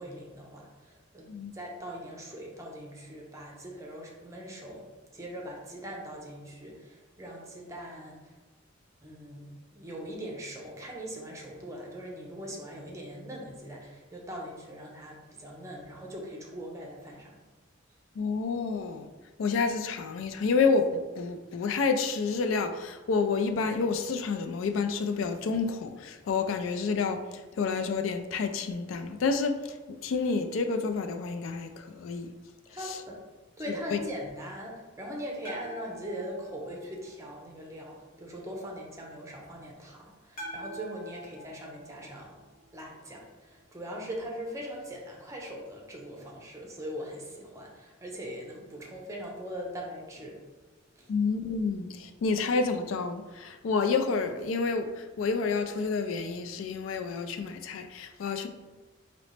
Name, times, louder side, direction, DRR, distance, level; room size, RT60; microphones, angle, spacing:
voice 1, 0.0-1.3 1.5-4.8 5.1-8.2 9.0-17.4 32.7-33.2 33.6-42.4 42.7-50.3 51.0-51.1, equal, 15° right, 0.7 m, -41 dB
voice 2, 18.2-19.1 19.4-27.2 27.6-29.6 30.0-32.3 32.8-33.0 33.7-34.0 51.1-58.5, left 4 dB, 80° left, 0.3 m, -29 dB
sound 1, 35.4-37.6 40.4-42.7, right 1 dB, 45° left, 1.0 m, -45 dB
4.0 x 2.9 x 3.2 m
head